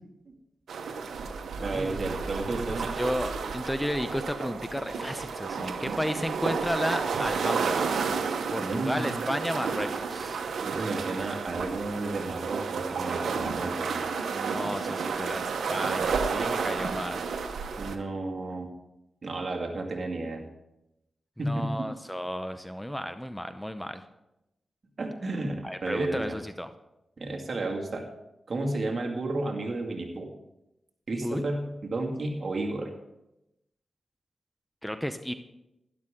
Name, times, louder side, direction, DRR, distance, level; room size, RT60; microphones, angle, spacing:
sound 1, 0.7-18.0, right 5 dB, 85° right, 0.9 m, -31 dB
voice 1, 1.6-2.9 8.6-9.2 10.6-14.1 17.8-18.7 19.2-20.4 21.4-21.9 25.0-26.4 27.2-28.0 28.5-30.3 31.1-32.9, right 2 dB, 50° right, 1 dB, 2.2 m, -32 dB
voice 2, 2.8-7.8 8.5-10.4 14.3-17.3 21.4-24.0 25.6-26.7 31.2-31.4 34.8-35.3, equal, 5° left, 9 dB, 0.7 m, -33 dB
12.0 x 11.5 x 3.7 m, 0.91 s
cardioid pair, 60°, 0 cm